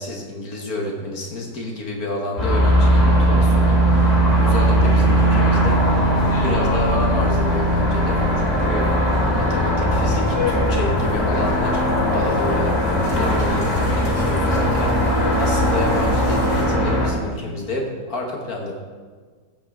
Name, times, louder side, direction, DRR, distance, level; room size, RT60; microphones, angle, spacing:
voice 1, 0.0-8.9 9.2-11.8 12.1-18.7, left 2 dB, 55° left, 1 dB, 1.7 m, -30 dB
sound 1, 2.4-17.1, equal, 20° left, 2.6 m, -19 dB
sound 2, 4.3-16.7, left 2 dB, 80° left, 3.1 m, -32 dB
15.5 x 8.4 x 3.6 m, 1.5 s
omnidirectional pair, 2.0 m